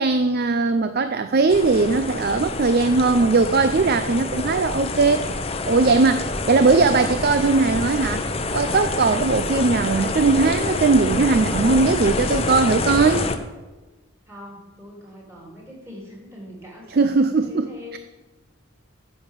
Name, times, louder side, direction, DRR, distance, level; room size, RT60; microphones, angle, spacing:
voice 1, 0.0-8.3 8.5-13.3 17.0-17.7 17.9-18.0, right 4 dB, 45° right, 10 dB, 0.5 m, -19 dB
sound 1, 1.5-13.4, left 3 dB, 25° left, 0.7 m, -27 dB
voice 2, 14.3-17.1 17.4-18.0, left 1 dB, 15° right, -2 dB, 3.6 m, -42 dB
10.5 x 7.2 x 7.5 m, 1.2 s
head